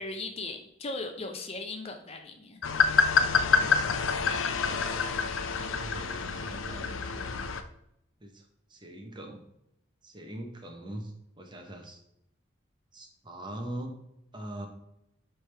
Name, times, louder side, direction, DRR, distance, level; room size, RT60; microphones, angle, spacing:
voice 1, 0.0-2.6, left 2 dB, 30° left, 5 dB, 0.6 m, -38 dB
sound 1, 2.6-7.6, left 6 dB, 85° left, 0.5 m, -27 dB
voice 2, 3.5-4.3 5.5-7.5 8.2-9.4 10.0-12.0 12.9-13.9 14.3-14.7, right 1 dB, 25° right, 3 dB, 0.9 m, -42 dB
9.9 x 3.4 x 3.4 m, 0.80 s
head